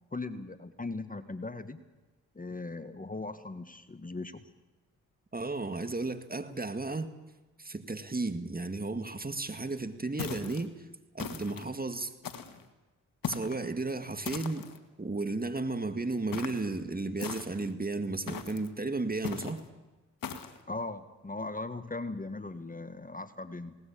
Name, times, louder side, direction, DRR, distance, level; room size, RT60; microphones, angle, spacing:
voice 1, 0.1-1.8 2.3-4.4 20.7-23.8, left 3 dB, 20° left, 11 dB, 1.6 m, -39 dB
voice 2, 5.3-7.1 7.6-10.9 11.1-12.1 13.3-14.7 15.0-19.6, right 3 dB, 25° right, 9 dB, 2.1 m, -34 dB
sound 1, 10.2-10.7 11.2-11.7 12.2-12.6 13.2-13.6 14.2-14.8 16.3-16.7 17.2-17.7 18.3-18.7 19.2-19.6 20.2-20.6, left 7 dB, 65° left, 2.0 m, -39 dB
20.0 x 18.5 x 8.7 m, 1.1 s
supercardioid pair, 50°, 37 cm